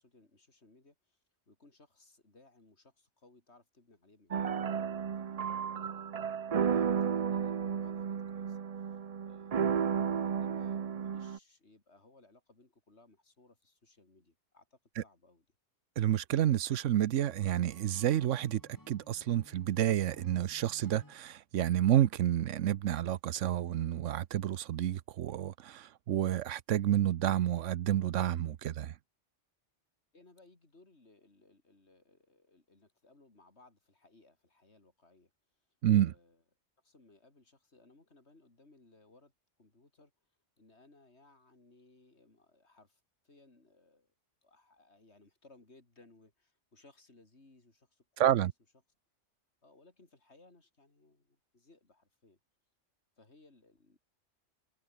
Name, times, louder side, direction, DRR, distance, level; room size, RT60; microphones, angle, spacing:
voice 1, 0.0-6.1 6.6-8.7 9.3-15.5 30.1-35.3 36.0-36.4 36.8-39.3 39.6-40.1 40.6-44.1 44.4-48.5 49.6-52.4 53.2-54.0, left 2 dB, 65° left, 4.3 m, -63 dB
sound 1, 4.3-11.4, right 7 dB, 45° right, 0.5 m, -33 dB
voice 2, 16.0-18.6 18.9-28.9 35.8-36.1 48.2-48.5, right 11 dB, 90° right, 1.1 m, -29 dB
Acoustic guitar / Strum, 17.1-21.2, left 1 dB, 15° left, 2.8 m, -58 dB
omnidirectional pair, 1.2 m